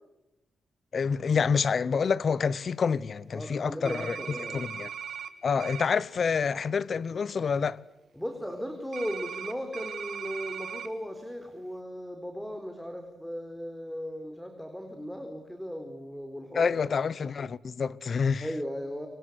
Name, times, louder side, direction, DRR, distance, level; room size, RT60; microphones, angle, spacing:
voice 1, 0.9-4.2 4.5-4.9 5.4-7.8 16.5-18.5, left 6 dB, 60° left, 1.0 m, -27 dB
voice 2, 3.3-4.6 8.2-16.8 18.4-19.1, equal, 5° left, 4.3 m, -37 dB
sound 1, 3.8-5.3 5.6-5.9 8.9-10.9, right 8 dB, 75° right, 2.5 m, -38 dB
28.5 x 25.0 x 8.3 m
cardioid pair, 70°, 0 cm